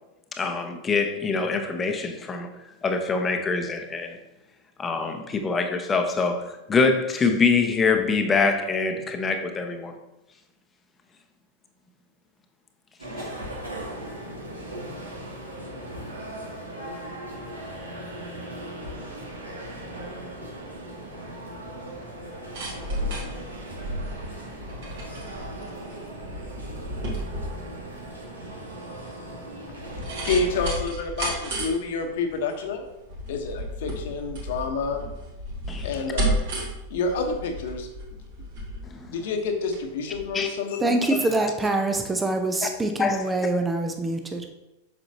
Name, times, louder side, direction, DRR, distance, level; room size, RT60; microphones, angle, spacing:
voice 1, 0.3-2.5 2.8-4.2 4.8-10.0 35.7-35.9 38.9-39.0 40.3-40.5 41.1-41.3 42.6-42.7 43.0-43.3, left 4 dB, 20° left, 5 dB, 0.9 m, -24 dB
sound 1, 13.0-30.7, right 1 dB, 75° right, 1.6 m, -38 dB
sound 2, 22.2-39.8 40.1-40.2, right 1 dB, 55° right, 2.3 m, -33 dB
voice 2, 30.2-32.8 33.3-35.0 35.8-36.4 36.9-37.9 39.1-41.0, left 4 dB, 55° left, 4 dB, 1.1 m, -28 dB
voice 3, 40.8-44.5, right 2 dB, 10° right, 5 dB, 0.7 m, -25 dB
7.8 x 6.3 x 2.8 m, 0.95 s
figure-of-eight pair, 90°, 0 cm